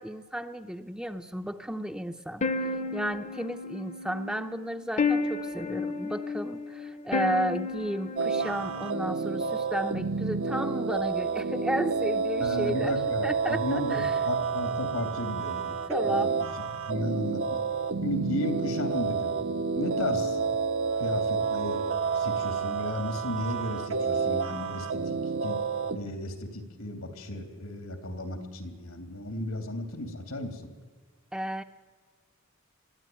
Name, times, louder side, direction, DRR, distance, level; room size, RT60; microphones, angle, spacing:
voice 1, 0.0-12.9 13.2-14.1 15.9-16.3 31.3-31.6, equal, 5° right, 7 dB, 0.6 m, -33 dB
sound 1, 2.4-9.5, left 3 dB, 35° left, 0.8 m, -32 dB
sound 2, 8.2-26.0, right 5 dB, 75° right, 1.2 m, -29 dB
voice 2, 12.4-15.8 16.0-16.4 16.9-17.6 18.0-19.4 19.7-20.4 21.0-21.8 22.1-25.6 25.9-30.7, left 1 dB, 85° left, 6 dB, 3.0 m, -34 dB
22.0 x 14.0 x 9.3 m, 1.5 s
head